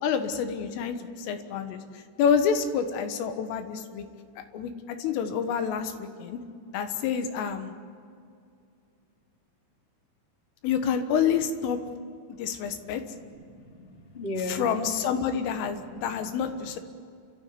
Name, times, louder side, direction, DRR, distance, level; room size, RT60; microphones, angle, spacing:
voice 1, 0.0-4.1 4.4-6.4 6.7-7.8 10.6-11.8 12.4-13.0 14.4-16.8, left 7 dB, 85° left, 7 dB, 4.0 m, -28 dB
voice 2, 13.1-14.7 15.9-16.2, left 2 dB, 15° left, 0 dB, 2.1 m, -36 dB
29.5 x 13.5 x 9.7 m, 2.4 s
omnidirectional pair, 5.7 m